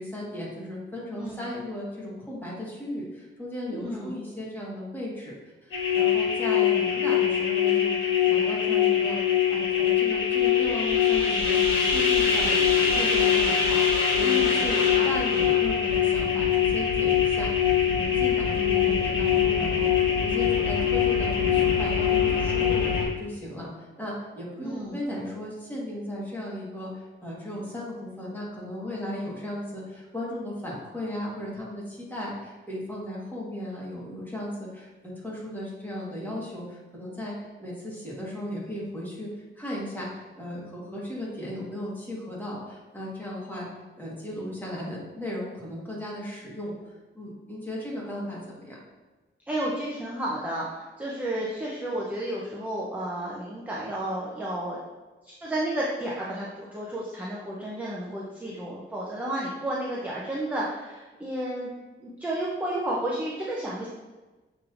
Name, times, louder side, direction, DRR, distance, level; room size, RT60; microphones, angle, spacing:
voice 1, 0.0-39.3 39.6-43.7 44.0-46.7 47.1-48.8, left 1 dB, 10° left, -5 dB, 1.4 m, -36 dB
voice 2, 1.1-1.5 3.7-4.1 14.2-14.7 18.5-19.1 24.6-25.0 49.5-54.8 55.2-61.7 62.0-63.9, right 1 dB, 5° right, -5 dB, 0.6 m, -32 dB
sound 1, 5.7-23.1, left 8 dB, 65° left, 1.3 m, -23 dB
6.6 x 3.1 x 2.5 m, 1.2 s
wide cardioid pair, 120°, 21 cm